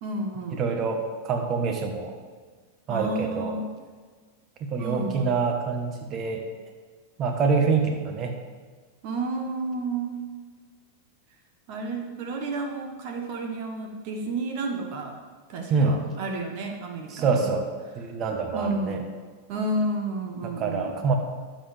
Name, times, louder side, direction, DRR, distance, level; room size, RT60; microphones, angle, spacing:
voice 1, 0.0-0.6 2.9-3.7 4.8-5.4 9.0-10.2 11.7-15.2 15.5-17.4 18.5-19.1 19.5-20.9, right 2 dB, 55° right, 3 dB, 1.3 m, -31 dB
voice 2, 0.5-2.2 2.9-3.6 4.6-6.4 7.2-8.4 15.7-16.0 17.1-17.7 17.9-19.0 20.4-21.1, right 4 dB, 35° right, 3 dB, 1.3 m, -26 dB
12.0 x 7.8 x 3.5 m, 1.5 s
hypercardioid pair, 120°, 0 cm